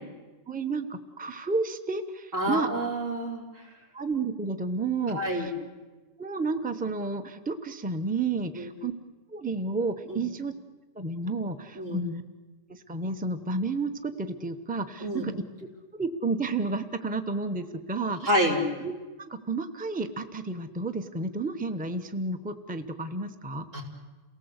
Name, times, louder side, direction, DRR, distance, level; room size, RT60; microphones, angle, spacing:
voice 1, 0.5-2.7 3.9-5.5 6.2-8.9 9.3-10.5 11.0-12.2 12.7-15.3 15.9-18.3 18.8-18.9 19.2-23.6, right 3 dB, 5° right, 8 dB, 1.0 m, -31 dB
voice 2, 2.3-3.4 5.1-5.5 8.4-8.7 10.1-10.2 11.7-12.0 15.0-15.2 18.2-18.6 23.7-23.8, equal, 75° right, -1 dB, 4.9 m, -28 dB
28.5 x 18.5 x 8.2 m, 1.2 s
omnidirectional pair, 1.3 m